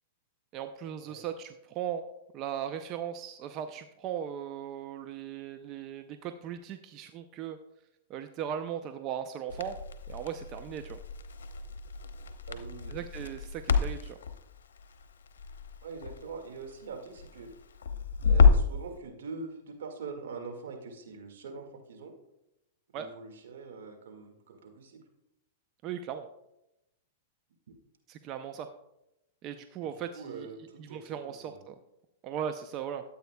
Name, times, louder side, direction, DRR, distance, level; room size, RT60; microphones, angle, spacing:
voice 1, 0.5-2.0 2.3-7.6 8.1-9.8 10.1-11.0 12.9-14.2 22.9-23.1 25.8-26.3 28.1-28.7 29.4-30.5 30.8-31.7 32.2-33.0, right 9 dB, 40° right, 8 dB, 0.5 m, -38 dB
Crackle, 9.5-18.8, left 5 dB, 85° left, 0.7 m, -29 dB
voice 2, 12.5-13.0 15.8-17.5 18.2-22.1 22.9-25.0 29.8-31.6, right 4 dB, 75° right, 4 dB, 1.8 m, -43 dB
13.0 x 8.1 x 2.3 m, 0.86 s
hypercardioid pair, 125°, 0 cm